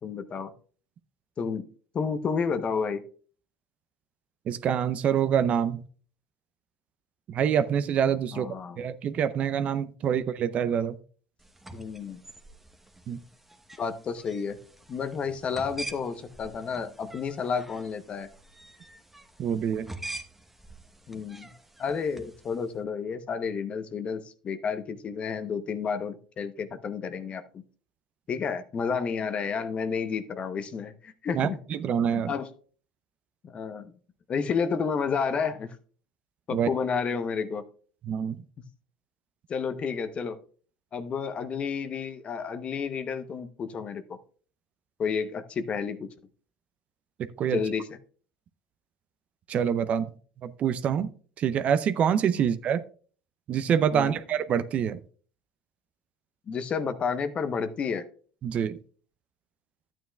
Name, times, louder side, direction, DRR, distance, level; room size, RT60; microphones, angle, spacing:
voice 1, 0.0-0.5 1.4-1.7 1.9-3.0 8.3-8.8 11.7-12.2 13.8-14.6 14.9-18.3 21.1-21.5 21.8-27.4 28.3-31.6 32.1-32.5 33.4-33.9 34.3-35.7 36.5-37.6 39.5-40.4 40.9-44.0 45.0-46.1 47.5-47.9 52.3-52.4 53.9-54.2 56.5-58.1, left 6 dB, 40° left, 11 dB, 0.8 m, -31 dB
voice 2, 4.5-5.8 7.3-8.5 8.8-11.0 13.1-13.2 19.4-19.9 31.3-32.3 36.5-36.7 38.0-38.4 47.4-47.6 49.5-50.1 50.4-51.1 51.4-52.8 53.5-55.0 58.4-58.8, right 8 dB, 45° right, 13 dB, 0.6 m, -26 dB
sound 1, 11.4-22.7, right 1 dB, 5° right, 1.0 m, -46 dB
12.5 x 9.0 x 2.3 m, 0.43 s
hypercardioid pair, 80°, 3 cm